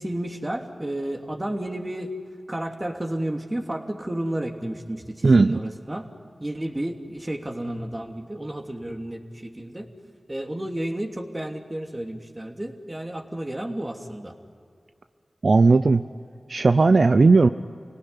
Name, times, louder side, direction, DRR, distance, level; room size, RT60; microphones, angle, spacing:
voice 1, 0.0-2.1 2.5-6.0 6.4-9.9 10.3-14.3, right 1 dB, 25° right, 3 dB, 3.0 m, -31 dB
voice 2, 5.2-5.6 15.4-16.0 16.5-17.5, right 3 dB, 65° right, 10 dB, 0.6 m, -16 dB
28.0 x 18.0 x 9.9 m, 2.3 s
cardioid pair, 45°, 0 cm